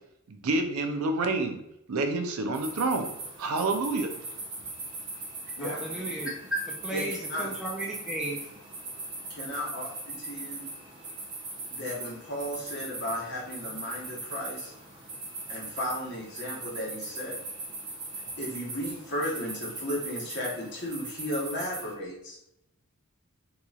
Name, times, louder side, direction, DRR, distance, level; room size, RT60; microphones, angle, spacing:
voice 1, 0.3-1.6 1.9-3.1 3.4-4.1, right 3 dB, 80° right, 6 dB, 0.5 m, -28 dB
sound 1, 2.5-21.9, right 2 dB, 20° right, 0.7 m, -40 dB
voice 2, 5.6-8.5, right 1 dB, 5° right, -4 dB, 0.3 m, -34 dB
voice 3, 6.9-7.5 9.3-10.7 11.7-14.7 15.5-17.4 18.4-22.4, left 1 dB, 50° left, -4 dB, 1.1 m, -35 dB
3.8 x 2.9 x 2.3 m, 0.81 s
head